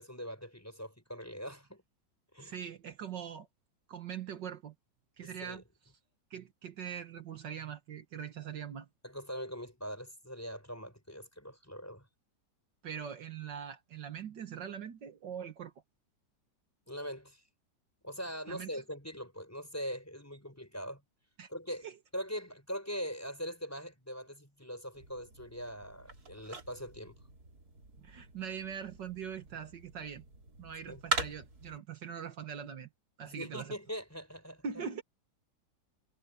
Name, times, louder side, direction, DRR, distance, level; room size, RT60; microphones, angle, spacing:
voice 1, 0.0-1.8 2.3-2.6 5.2-5.6 9.0-12.1 16.9-17.4 18.0-21.0 21.5-21.9 22.1-27.2 30.9-31.0 33.2-34.8, equal, 10° left, 5.4 m, -42 dB
voice 2, 2.4-3.5 3.9-4.7 5.2-5.6 6.3-8.9 12.8-15.7 18.5-18.8 21.4-21.5 21.8-22.0 28.0-30.2 30.6-32.9 33.2-33.8 34.6-35.0, right 8 dB, 70° right, 1.9 m, -42 dB
sound 1, 24.9-31.8, right 3 dB, 55° right, 3.9 m, -42 dB
omnidirectional pair, 2.0 m